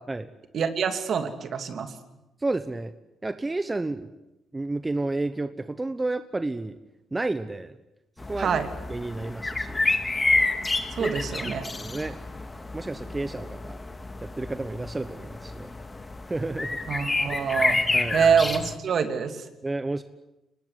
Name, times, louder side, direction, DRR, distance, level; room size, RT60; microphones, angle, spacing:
voice 1, 0.5-1.9 8.4-8.7 10.9-11.6 16.9-17.8 18.1-19.4, right 6 dB, 60° right, 8 dB, 3.0 m, -25 dB
voice 2, 2.4-2.9 3.2-4.1 4.5-6.8 7.1-7.8 8.3-8.6 8.9-9.8 11.0-12.2 12.7-13.8 14.2-15.7 16.3-16.8 17.9-18.2 19.6-20.0, right 2 dB, 20° right, 11 dB, 1.1 m, -31 dB
sound 1, 8.2-18.7, left 2 dB, 20° left, 2.2 m, -29 dB
24.5 x 20.0 x 9.9 m, 0.94 s
cardioid pair, 90°, 0 cm